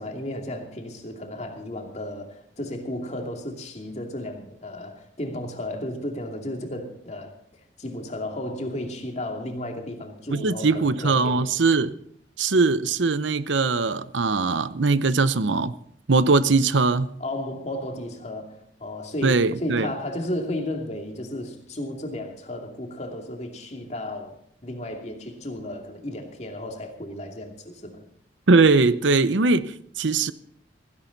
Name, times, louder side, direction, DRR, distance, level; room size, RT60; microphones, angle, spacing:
voice 1, 0.0-7.3 7.8-11.4 17.2-24.3 24.6-28.0, left 1 dB, 35° left, 2.6 m, -33 dB
voice 2, 10.3-12.0 12.4-15.7 16.1-17.1 19.2-19.9 28.5-30.3, right 3 dB, 80° right, 0.8 m, -21 dB
16.5 x 16.0 x 4.0 m
head